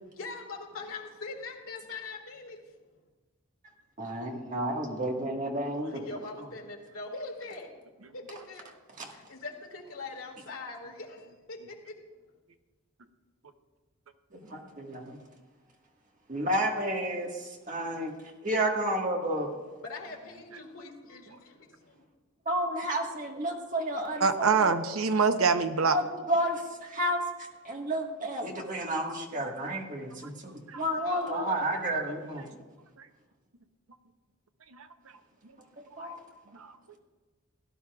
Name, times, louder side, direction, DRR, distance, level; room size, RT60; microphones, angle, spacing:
voice 1, 0.1-2.6 5.8-7.7 8.1-8.7 9.1-11.9 19.8-22.1 31.0-32.6, left 3 dB, 80° left, 1 dB, 1.9 m, -42 dB
voice 2, 4.0-6.0 9.0-9.1 14.5-15.2 16.3-18.1 18.4-19.5 22.4-24.8 25.9-27.2 27.6-32.5 36.0-36.2, right 1 dB, 35° right, 1 dB, 1.5 m, -31 dB
voice 3, 24.2-26.0 30.7-30.8 34.7-34.9 36.5-36.7, right 5 dB, 80° right, 8 dB, 0.8 m, -25 dB
17.0 x 11.5 x 2.4 m, 1.3 s
head